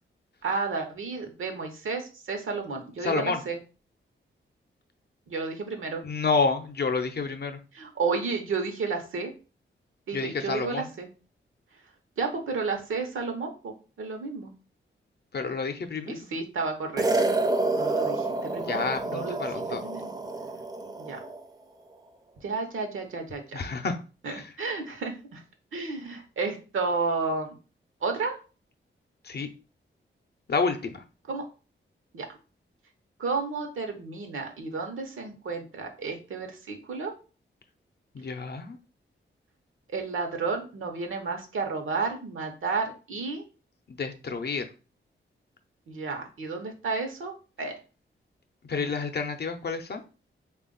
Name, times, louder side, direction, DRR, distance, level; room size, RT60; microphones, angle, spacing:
voice 1, 0.4-3.6 5.3-6.0 7.7-9.3 10.1-11.1 12.2-14.5 16.1-17.1 17.7-20.1 21.0-21.2 22.4-23.6 24.2-25.4 25.7-27.6 28.0-28.4 31.3-31.4 32.1-32.3 33.2-37.1 39.9-43.4 45.9-47.3 47.6-47.7, right 4 dB, 80° right, 4 dB, 0.9 m, -32 dB
voice 2, 3.0-3.4 6.0-7.6 10.1-10.9 15.3-16.1 18.7-19.8 23.5-23.9 24.3-24.5 29.2-29.5 30.5-31.0 38.1-38.8 44.0-44.7 48.7-50.0, left 4 dB, 55° left, 7 dB, 0.6 m, -29 dB
sound 1, 17.0-21.4, right 2 dB, 20° right, 0.5 m, -28 dB
3.4 x 2.4 x 3.8 m, 0.34 s
cardioid pair, 70°, 21 cm